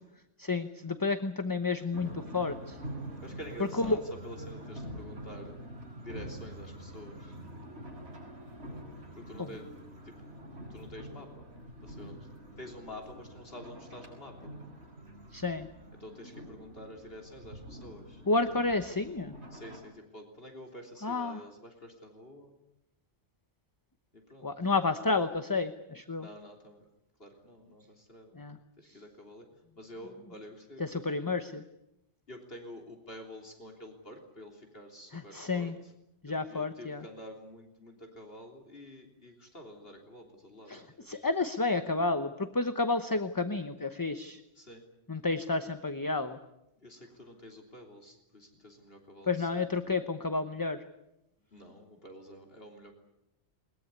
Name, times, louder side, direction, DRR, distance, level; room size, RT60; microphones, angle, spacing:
voice 1, 0.4-2.8 3.8-4.0 15.3-15.7 18.3-19.3 21.0-21.4 24.4-26.3 28.4-28.6 30.8-31.6 35.1-35.7 36.2-37.0 40.7-44.4 45.1-46.4 49.3-50.8, left 3 dB, 20° left, 10 dB, 0.9 m, -30 dB
sound 1, 1.9-19.8, right 1 dB, 60° right, 6.8 m, -46 dB
voice 2, 3.2-5.6 6.0-7.4 9.1-9.7 10.0-10.2 10.7-11.5 11.8-12.3 12.6-14.5 16.0-18.2 19.5-22.5 24.1-24.5 26.2-26.9 27.2-28.4 28.8-29.5 29.8-31.1 32.3-35.9 36.2-41.3 44.6-44.8 46.8-49.7 51.5-52.9, equal, 55° left, 2 dB, 3.5 m, -48 dB
21.5 x 21.5 x 9.6 m, 0.85 s
omnidirectional pair, 1.2 m